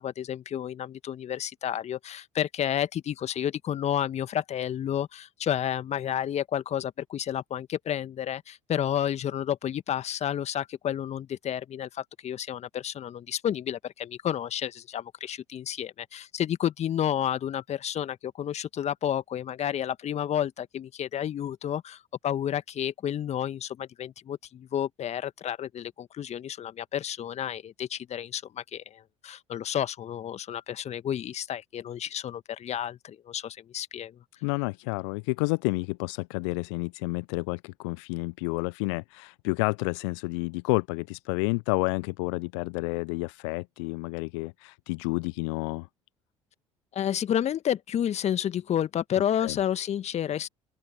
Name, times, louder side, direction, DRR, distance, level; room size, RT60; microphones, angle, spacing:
voice 1, 0.0-34.2 46.9-50.5, left 10 dB, 45° left, 1.8 m, -31 dB
voice 2, 34.4-45.9 49.4-49.6, left 31 dB, 65° left, 0.7 m, -30 dB
open air
figure-of-eight pair, 55°, 16 cm